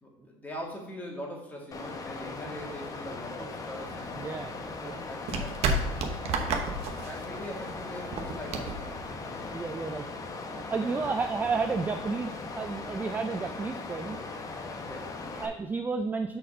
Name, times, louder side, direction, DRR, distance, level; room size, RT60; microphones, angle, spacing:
voice 1, 0.0-4.2 4.9-5.9 6.4-8.9 10.8-11.1 14.8-15.2, equal, 10° left, -1 dB, 1.8 m, -42 dB
Water, 1.7-15.5, left 3 dB, 30° left, 0.8 m, -39 dB
sound 1, 3.8-9.8, right 3 dB, 55° right, 1.0 m, -33 dB
voice 2, 4.1-4.6 4.8-5.0 9.5-10.0 10.7-14.2 15.4-16.4, right 4 dB, 15° right, 6 dB, 0.3 m, -32 dB
6.4 x 4.2 x 5.3 m, 0.85 s
cardioid pair, 125°, 13 cm